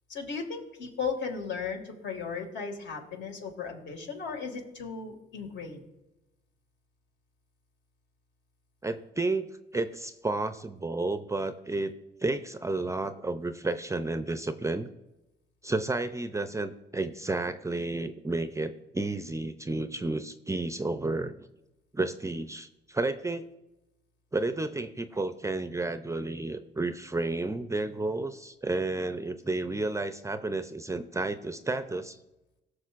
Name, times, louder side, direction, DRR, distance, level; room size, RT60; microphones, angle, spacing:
voice 1, 0.1-5.8, left 5 dB, 65° left, 3 dB, 2.0 m, -36 dB
voice 2, 8.8-11.9 12.2-14.9 15.6-21.4 21.9-23.4 24.3-32.2, right 2 dB, 15° right, 10 dB, 0.4 m, -31 dB
18.5 x 6.4 x 2.5 m, 0.95 s
cardioid pair, 90°, 20 cm